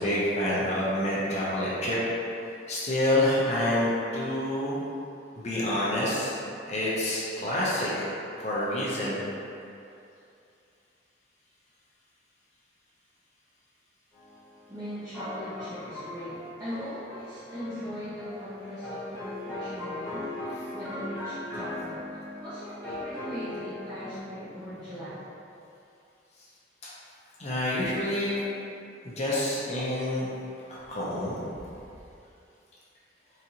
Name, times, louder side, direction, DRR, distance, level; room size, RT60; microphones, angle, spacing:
voice 1, 0.0-2.0 2.7-4.8 5.4-6.3 6.7-8.1 8.4-9.2 26.8-26.9 27.4-28.4 29.0-30.3 30.9-31.4, left 1 dB, 35° left, -8 dB, 0.6 m, -27 dB
sound 1, 14.1-24.2, left 1 dB, ahead, 1.3 m, -39 dB
voice 2, 14.7-25.3, equal, 20° right, -14 dB, 0.6 m, -39 dB
3.9 x 2.5 x 2.9 m, 2.6 s
head